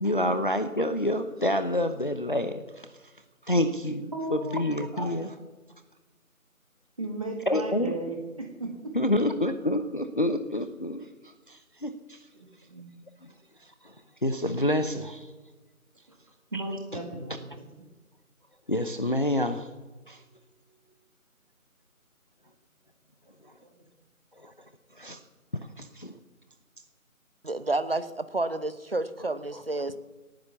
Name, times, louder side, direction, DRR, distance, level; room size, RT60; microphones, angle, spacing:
voice 1, 0.0-2.6 3.5-5.3 7.5-7.9 8.9-11.0 11.5-12.2 14.2-15.3 16.5-16.6 18.7-19.7 20.1-20.2 24.4-24.5 25.0-25.2 25.8-26.1 29.5-29.6, left 1 dB, 35° left, 9 dB, 0.8 m, -27 dB
voice 2, 4.1-4.6 4.9-5.3 7.0-8.7 12.7-12.9 16.5-17.6, right 2 dB, 25° right, 1 dB, 1.9 m, -35 dB
voice 3, 27.4-30.0, right 2 dB, 40° right, 14 dB, 0.9 m, -30 dB
18.5 x 10.0 x 7.1 m, 1.2 s
figure-of-eight pair, 165°, 43 cm